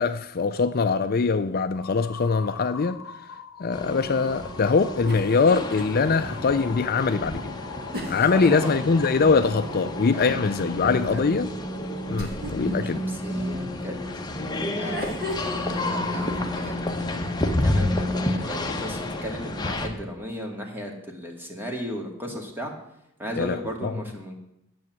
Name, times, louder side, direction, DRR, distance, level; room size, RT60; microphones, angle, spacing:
voice 1, 0.0-3.0 3.6-7.6 8.1-11.5 12.1-13.0 23.4-24.0, left 4 dB, 45° left, 0.5 m, -23 dB
sound 1, 1.8-11.1, left 5 dB, 85° left, 0.9 m, -43 dB
sound 2, 3.7-19.9, left 1 dB, 20° left, 1.1 m, -30 dB
sound 3, 5.1-5.8 6.2-6.3 7.9-9.7 12.2-12.7 14.7-15.9, equal, 50° right, 2.2 m, -34 dB
voice 2, 8.3-8.7 10.1-10.4 11.1-11.2 12.7-14.0 14.8-17.1 17.5-22.7 23.2-24.3, equal, 10° right, 2.1 m, -36 dB
10.5 x 7.1 x 7.8 m
head